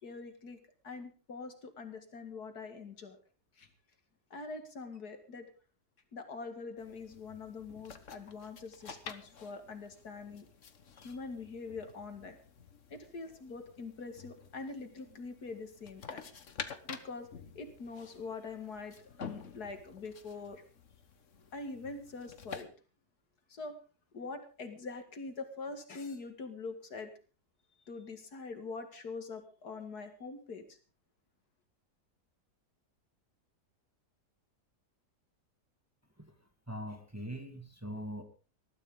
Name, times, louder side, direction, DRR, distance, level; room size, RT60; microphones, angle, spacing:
voice 1, 0.0-0.6 0.8-3.2 3.6-3.7 4.3-5.5 6.1-10.5 11.0-12.4 12.9-16.2 16.9-17.3 17.5-20.6 21.5-22.7 23.5-23.8 24.1-27.1 27.9-30.8, left 4 dB, 70° left, 7 dB, 2.6 m, -44 dB
sound 1, 6.8-22.7, left 6 dB, 50° left, 1.6 m, -50 dB
voice 2, 36.7-38.2, equal, 10° right, 5 dB, 2.0 m, -41 dB
20.0 x 13.5 x 3.9 m, 0.36 s
omnidirectional pair, 1.7 m